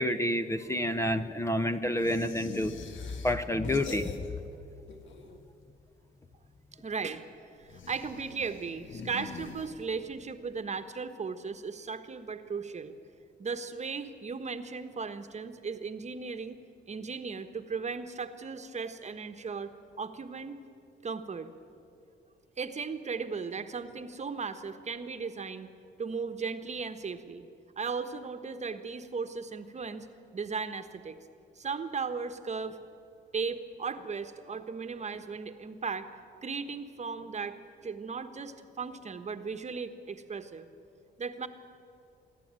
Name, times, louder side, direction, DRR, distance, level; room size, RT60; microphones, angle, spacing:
voice 1, 0.0-2.7 3.2-4.1, left 1 dB, 15° left, 8 dB, 0.8 m, -29 dB
sound 1, 2.0-4.6 4.8-5.6 7.6-10.2, left 5 dB, 75° left, 1.8 m, -44 dB
voice 2, 6.7-7.3 7.6-12.9 13.4-16.6 16.9-20.6 21.0-21.5 22.6-25.7 26.0-27.5 27.8-30.1 30.3-31.2 31.6-32.8 33.3-36.1 36.4-40.7 41.2-41.5, right 5 dB, 35° right, 8 dB, 1.3 m, -36 dB
26.5 x 11.5 x 8.9 m, 2.6 s
cardioid pair, 90°, 20 cm